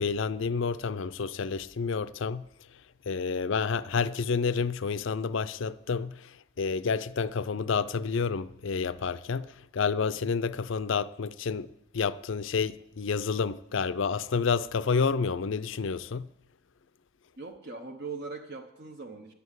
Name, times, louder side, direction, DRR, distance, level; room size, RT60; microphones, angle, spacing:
voice 1, 0.0-2.5 3.1-11.7 11.9-16.3, left 5 dB, 60° left, 0.5 m, -29 dB
voice 2, 17.4-19.3, right 4 dB, 50° right, 0.9 m, -40 dB
11.5 x 9.3 x 8.1 m
head